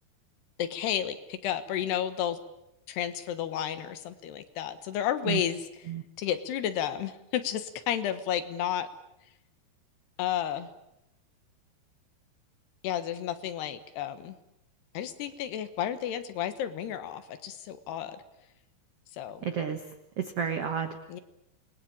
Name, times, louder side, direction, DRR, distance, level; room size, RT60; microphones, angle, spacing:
voice 1, 0.6-2.4 2.9-5.6 6.2-8.9 10.2-10.7 12.8-14.4 15.0-18.2 19.1-19.5 21.1-21.2, left 10 dB, 75° left, 10 dB, 3.4 m, -32 dB
voice 2, 19.4-19.9 20.2-21.0, right 7 dB, 80° right, 8 dB, 1.3 m, -31 dB
27.5 x 21.0 x 8.8 m, 0.86 s
omnidirectional pair, 5.0 m